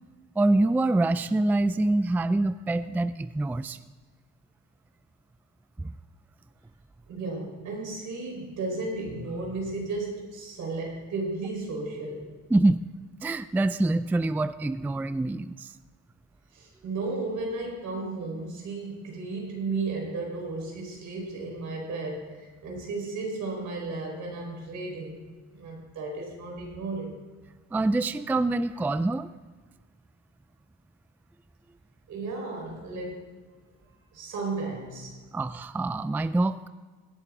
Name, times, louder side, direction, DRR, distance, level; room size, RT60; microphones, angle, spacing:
voice 1, 0.4-3.8 5.8-5.9 12.5-12.8 13.2-15.7 27.7-29.3 35.3-36.7, right 2 dB, 5° right, 13 dB, 0.3 m, -25 dB
voice 2, 7.1-12.3 16.5-25.2 25.5-27.2 32.1-33.3 34.1-35.2, right 3 dB, 75° right, 0 dB, 4.5 m, -34 dB
17.5 x 10.5 x 3.6 m, 1.4 s
cardioid pair, 90°, 30 cm